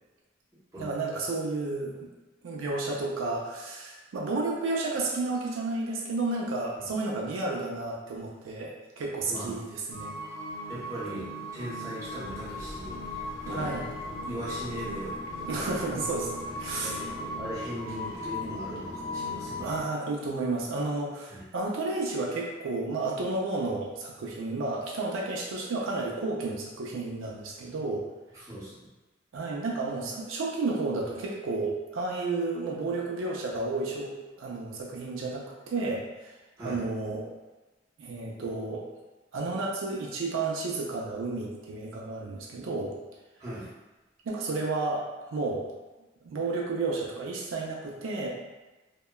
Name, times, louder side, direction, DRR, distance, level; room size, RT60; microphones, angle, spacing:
voice 1, 0.8-2.0 2.4-10.1 13.4-13.9 15.4-17.0 19.6-28.0 29.3-34.1 34.4-36.3 36.6-37.3 38.0-38.9 39.3-42.9 44.3-45.7 46.2-48.3, right 3 dB, 80° right, -2 dB, 0.4 m, -32 dB
sound 1, 9.9-19.8, left 1 dB, 25° left, 0.5 m, -37 dB
voice 2, 10.7-13.7 14.0-15.8 16.4-19.8 21.3-21.4 28.3-28.8 36.6-36.8 43.4-43.7, right 1 dB, 15° right, -11 dB, 0.8 m, -39 dB
2.8 x 2.1 x 2.2 m, 1.1 s
head